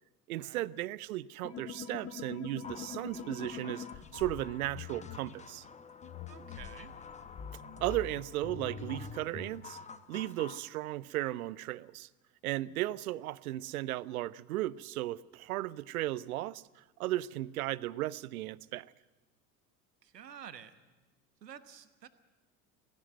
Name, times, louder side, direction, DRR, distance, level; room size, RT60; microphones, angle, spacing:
voice 1, 0.3-3.9 4.1-5.7 7.8-9.8 10.1-12.1 12.4-18.9, right 15 dB, 65° right, 0.6 m, -35 dB
sound 1, 1.4-5.2 6.0-9.6, left 7 dB, 30° left, 1.5 m, -44 dB
sound 2, 2.6-10.6, left 5 dB, 15° left, 0.9 m, -50 dB
voice 2, 6.3-7.0 20.0-20.8 21.4-22.1, right 8 dB, 80° right, 1.3 m, -50 dB
17.5 x 16.0 x 9.1 m
figure-of-eight pair, 75°, 48 cm